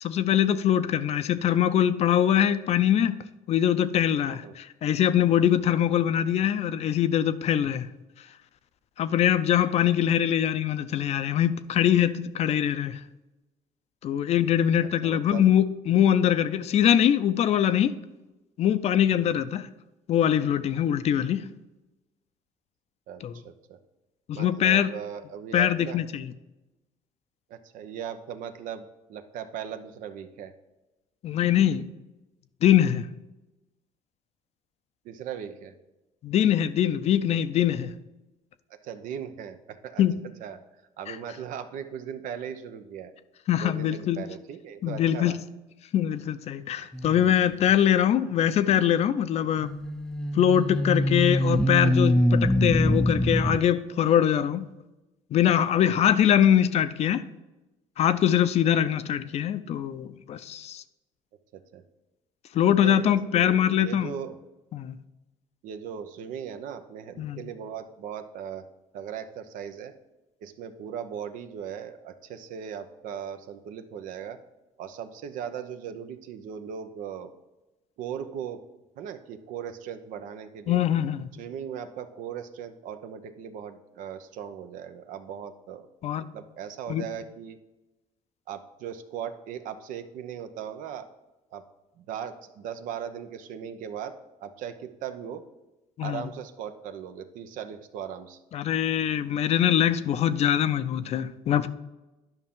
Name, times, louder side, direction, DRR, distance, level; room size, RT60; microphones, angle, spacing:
voice 1, 0.0-3.2 3.5-7.9 9.0-13.0 14.0-18.0 18.6-19.7 20.1-21.5 23.2-23.3 24.3-24.9 25.5-26.3 31.2-31.9 32.6-33.1 36.2-37.9 40.0-40.2 41.1-41.2 43.5-44.2 44.8-45.4 45.9-49.7 50.3-54.6 55.3-57.2 58.0-60.8 62.5-64.1 64.7-65.0 67.2-67.4 80.7-81.3 86.0-86.2 86.9-87.1 96.0-96.2 98.5-101.7, left 10 dB, 55° left, 0.5 m, -23 dB
voice 2, 14.8-15.4 19.2-19.4 23.1-23.8 24.3-26.0 27.5-30.5 35.0-35.7 38.7-40.6 41.0-43.1 43.6-45.4 46.8-46.9 61.5-61.8 62.8-64.4 65.6-68.7 68.9-69.9 70.4-74.4 74.8-77.3 78.0-78.6 79.0-80.8 81.3-85.9 86.3-87.6 88.5-91.1 91.5-91.6 92.0-95.4 96.0-98.4, right 8 dB, 75° right, 0.7 m, -38 dB
sound 1, 46.9-47.3 49.6-53.6, equal, 5° left, 0.4 m, -24 dB
10.5 x 5.7 x 3.7 m
cardioid pair, 105°, 14 cm